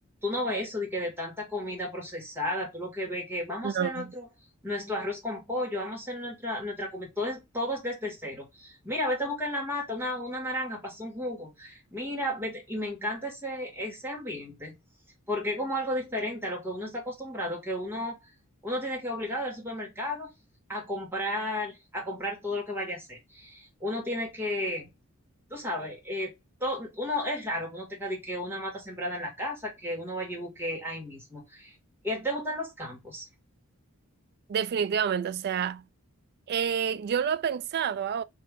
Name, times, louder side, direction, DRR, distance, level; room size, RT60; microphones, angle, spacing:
voice 1, 0.2-4.3 4.6-14.7 15.3-18.2 18.6-20.3 20.7-24.9 25.5-26.3 26.6-31.7 32.0-33.3, left 1 dB, 10° right, 2.1 m, -33 dB
voice 2, 3.6-4.1 34.5-35.8 36.5-38.2, right 7 dB, 50° right, 0.3 m, -28 dB
3.7 x 3.2 x 3.5 m
head